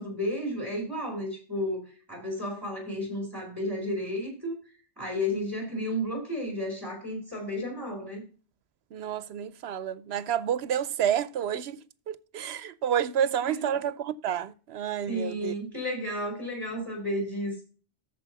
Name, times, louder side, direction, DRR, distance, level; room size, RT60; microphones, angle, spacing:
voice 1, 0.0-4.5 5.0-8.2 13.5-13.7 15.1-17.6, left 1 dB, 20° right, 4.6 m, -32 dB
voice 2, 8.9-15.5, right 9 dB, 80° right, 0.9 m, -30 dB
13.5 x 4.6 x 4.0 m
omnidirectional pair, 1.1 m